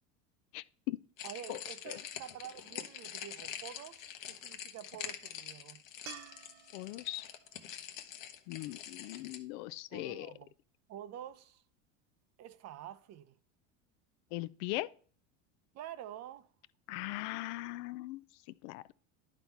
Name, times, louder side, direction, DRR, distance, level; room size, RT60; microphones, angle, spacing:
voice 1, 0.5-1.0 1.5-1.6 6.7-7.2 8.5-10.3 14.3-14.9 16.9-18.2 18.6-18.9, left 18 dB, 65° left, 0.5 m, -39 dB
sound 1, 1.2-9.4, left 10 dB, 90° left, 1.1 m, -45 dB
voice 2, 1.2-5.8 9.9-10.5 10.9-11.6 12.4-13.4 15.7-16.5, right 11 dB, 45° right, 0.6 m, -48 dB
sound 2, 6.1-9.3 12.6-12.7, right 10 dB, 70° right, 1.0 m, -54 dB
11.0 x 4.1 x 4.5 m
supercardioid pair, 105°, 38 cm